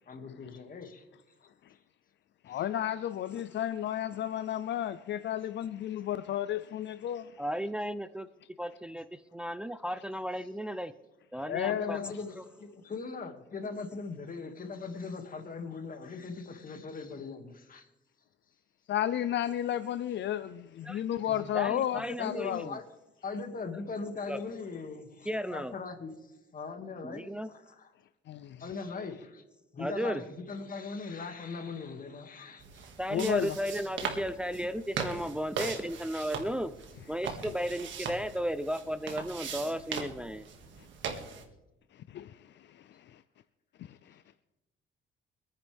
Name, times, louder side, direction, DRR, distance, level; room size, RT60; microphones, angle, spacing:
voice 1, 0.0-0.9 2.6-2.7 11.7-17.9 21.3-21.6 22.2-22.8 23.2-26.1 26.5-27.9 28.6-29.4 29.7-32.9, left 4 dB, 45° left, 2.3 m, -40 dB
voice 2, 2.4-7.3 11.5-12.1 18.9-22.7 28.3-28.6 33.1-33.6 42.1-42.4 42.7-43.2 43.8-44.0, left 11 dB, 65° left, 0.6 m, -32 dB
voice 3, 7.4-8.3 8.6-10.9 11.3-12.0 12.4-12.5 20.8-21.0 21.5-22.8 24.3-24.4 25.2-25.7 27.0-27.5 29.8-30.2 33.0-36.7 37.1-40.5, equal, 5° right, 0.5 m, -34 dB
sound 1, 32.6-41.4, right 6 dB, 70° right, 2.2 m, -40 dB
25.5 x 9.9 x 3.5 m
cardioid pair, 90°, 20 cm